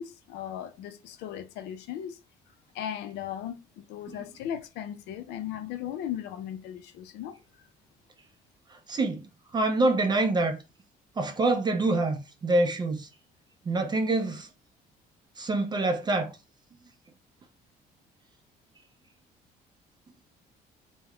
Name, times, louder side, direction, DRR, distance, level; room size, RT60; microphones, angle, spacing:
voice 1, 0.0-2.2 2.7-7.4, left 10 dB, 85° left, 0.4 m, -37 dB
voice 2, 8.7-9.3 9.5-10.6 11.2-13.1 13.7-14.5 15.4-16.4, right 2 dB, 25° right, 0.4 m, -26 dB
2.2 x 2.0 x 3.4 m
cardioid pair, 110°, 17 cm